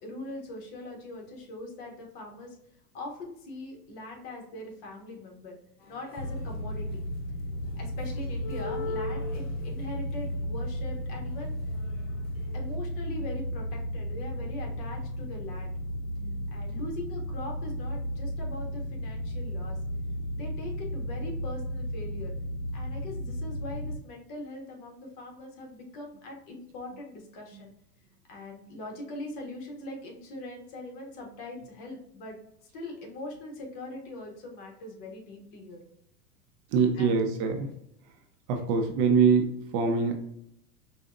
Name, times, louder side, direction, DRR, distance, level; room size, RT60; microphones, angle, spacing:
voice 1, 0.0-2.5 2.9-5.6 5.8-7.0 7.8-11.6 12.5-15.7 16.5-19.8 20.3-22.3 22.7-27.7 28.3-32.4 32.7-35.8 36.9-37.2, left 2 dB, 50° left, 1 dB, 1.5 m, -41 dB
sound 1, 5.8-6.9 7.4-12.7, left 3 dB, 20° left, 0.5 m, -42 dB
sound 2, 6.2-23.9, equal, 70° left, 0.9 m, -34 dB
voice 2, 16.2-16.5 27.5-27.6 36.7-37.7 38.5-40.1, right 5 dB, 45° right, 4 dB, 0.8 m, -24 dB
5.2 x 2.4 x 2.5 m, 0.73 s
hypercardioid pair, 115°, 47 cm